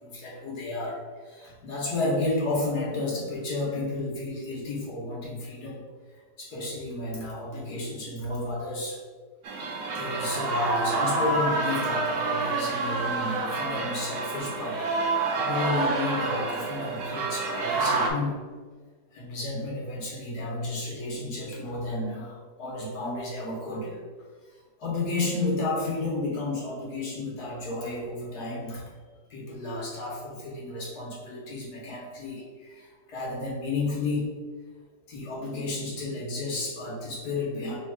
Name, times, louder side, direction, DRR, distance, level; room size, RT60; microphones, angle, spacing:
voice 1, 0.0-5.8 6.4-9.0 9.9-14.9 15.3-18.4 19.1-24.0 24.8-28.8 29.3-34.3 35.1-37.8, left 2 dB, 70° left, -4 dB, 1.5 m, -32 dB
sound 1, 9.4-18.1, right 3 dB, 80° right, 1.3 m, -28 dB
3.5 x 2.8 x 4.5 m, 1.5 s
omnidirectional pair, 1.9 m